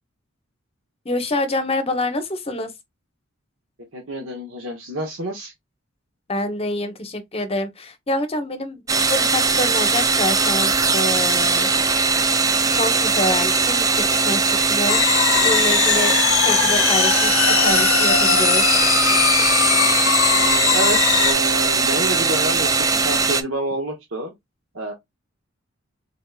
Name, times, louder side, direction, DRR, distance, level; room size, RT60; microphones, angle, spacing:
voice 1, 1.0-2.7 6.3-8.8 9.1-11.8 12.7-16.1 16.4-18.6, left 1 dB, 30° left, 0.9 m, -26 dB
voice 2, 3.9-5.5 15.9-16.2 20.3-24.3 24.7-24.9, right 1 dB, 70° right, 1.0 m, -28 dB
sound 1, 8.9-23.4, right 4 dB, 15° right, 0.4 m, -20 dB
sound 2, 14.9-21.3, left 10 dB, 85° left, 0.5 m, -20 dB
3.9 x 3.5 x 2.3 m
head